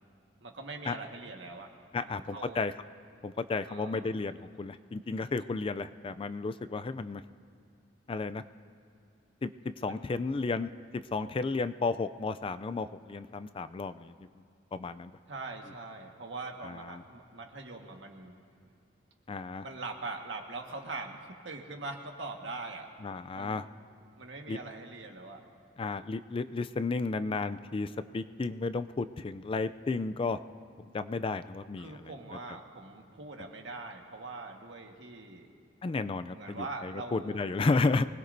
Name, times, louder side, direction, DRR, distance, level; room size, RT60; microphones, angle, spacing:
voice 1, 0.4-2.6 3.7-4.1 9.8-10.2 15.3-18.4 19.6-22.9 23.3-23.7 24.2-25.4 31.2-31.4 31.8-35.5 36.3-37.4, right 3 dB, 80° right, 2 dB, 1.5 m, -42 dB
voice 2, 1.9-2.7 3.2-7.2 8.1-8.4 9.4-9.5 9.8-14.2 14.7-15.1 16.6-17.0 19.3-19.6 23.0-23.7 24.5-24.6 25.8-30.4 30.9-31.9 35.8-38.1, left 3 dB, 30° left, 12 dB, 0.3 m, -33 dB
24.5 x 19.5 x 2.7 m, 2.4 s
head